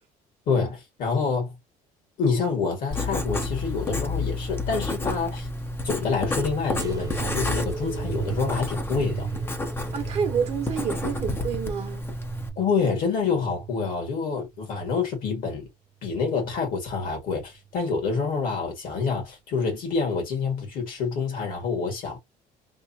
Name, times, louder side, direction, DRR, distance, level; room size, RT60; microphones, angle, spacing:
voice 1, 0.5-1.6 2.2-5.5 5.8-9.3 12.6-15.7 16.0-22.2, left 5 dB, 60° left, 1.8 m, -27 dB
Writing, 2.9-12.5, left 2 dB, 15° left, 0.6 m, -30 dB
sound 1, 6.8-14.0 14.5-15.3 16.1-16.6 17.6-17.7, right 7 dB, 25° right, 0.4 m, -37 dB
voice 2, 9.9-12.0, right 7 dB, 45° right, 1.0 m, -28 dB
3.5 x 2.5 x 2.7 m
cardioid pair, 140°, 16 cm